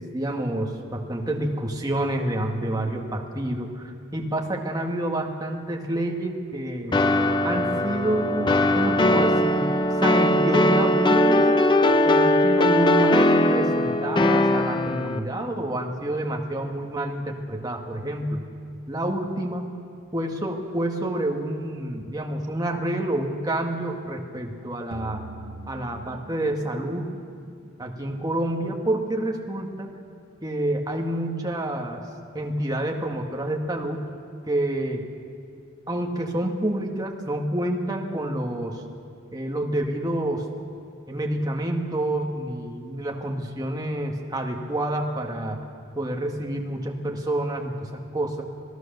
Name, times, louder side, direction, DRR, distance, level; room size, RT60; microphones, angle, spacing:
voice 1, 0.0-7.0 7.4-9.7 10.0-11.4 12.1-18.4 18.9-19.7 20.1-25.2 25.7-27.1 27.8-29.9 30.4-32.0 32.3-34.1 34.4-35.0 35.9-38.8 39.3-40.4 41.1-45.6 46.0-48.5, right 1 dB, 15° right, 1 dB, 1.7 m, -28 dB
sound 1, 6.9-15.2, left 1 dB, 20° left, 0.6 m, -20 dB
sound 2, 24.9-28.2, right 3 dB, 65° right, 0.9 m, -42 dB
26.5 x 17.0 x 6.8 m, 2.3 s
head